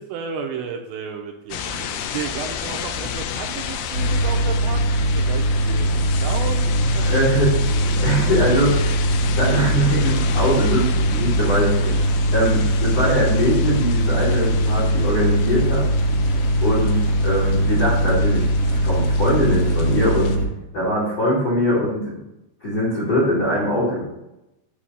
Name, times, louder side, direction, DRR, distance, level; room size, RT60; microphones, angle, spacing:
voice 1, 0.0-5.9 6.2-7.2 11.9-12.3 12.7-12.8, right 7 dB, 80° right, 2 dB, 2.5 m, -33 dB
sound 1, 1.5-20.4, left 7 dB, 85° left, 2.8 m, -32 dB
sound 2, 3.9-20.4, right 1 dB, 60° right, 0.9 m, -20 dB
voice 2, 7.0-8.9 9.3-11.7 12.3-15.8 16.6-17.0 17.2-18.5 18.8-20.3 20.7-22.2 22.6-24.0, equal, 65° left, -6 dB, 0.9 m, -22 dB
8.3 x 2.8 x 5.5 m, 0.92 s
omnidirectional pair, 5.3 m